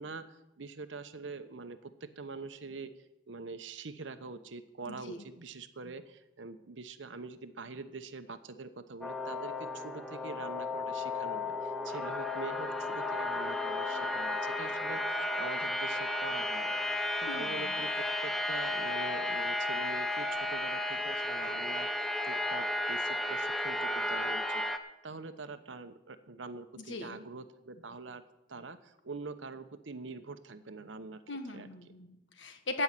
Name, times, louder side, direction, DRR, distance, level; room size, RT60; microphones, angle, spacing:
voice 1, 0.0-1.8 2.2-2.9 3.3-16.7 17.2-24.6 25.0-28.2 28.5-31.2 31.5-31.7, right 3 dB, 90° right, 10 dB, 0.9 m, -44 dB
voice 2, 4.9-5.2 17.3-17.8 26.9-27.2 31.3-32.8, left 2 dB, 75° left, 6 dB, 1.6 m, -39 dB
sound 1, 9.0-24.8, left 1 dB, ahead, 0.8 m, -33 dB
14.5 x 5.6 x 9.0 m, 0.93 s
head